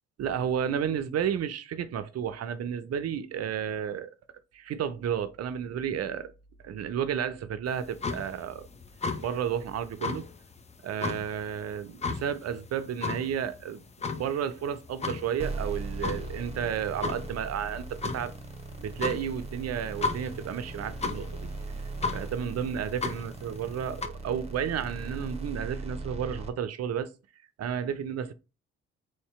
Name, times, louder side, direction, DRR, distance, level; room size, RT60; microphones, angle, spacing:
voice 1, 0.2-4.1 4.5-6.3 6.6-8.7 9.2-10.3 10.8-13.8 14.1-18.3 18.8-21.5 22.1-27.1 27.6-28.3, right 8 dB, 50° right, 0.5 m, -32 dB
sound 1, 7.7-24.1, left 4 dB, 20° left, 0.5 m, -36 dB
sound 2, 15.4-26.5, right 3 dB, 20° right, 0.9 m, -39 dB
3.2 x 2.7 x 3.1 m
hypercardioid pair, 45°, 31 cm